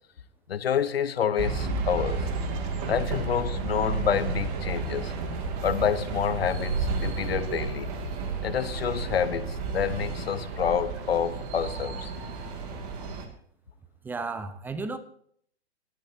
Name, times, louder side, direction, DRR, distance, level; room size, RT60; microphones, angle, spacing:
voice 1, 0.5-2.2 2.9-5.1 5.6-7.9 8.4-12.1, left 8 dB, 60° left, 1.2 m, -28 dB
sound 1, 1.4-13.3, right 4 dB, 35° right, 2.5 m, -32 dB
voice 2, 14.0-15.0, right 3 dB, 5° right, 0.7 m, -33 dB
20.5 x 13.0 x 2.9 m
figure-of-eight pair, 120°, 34 cm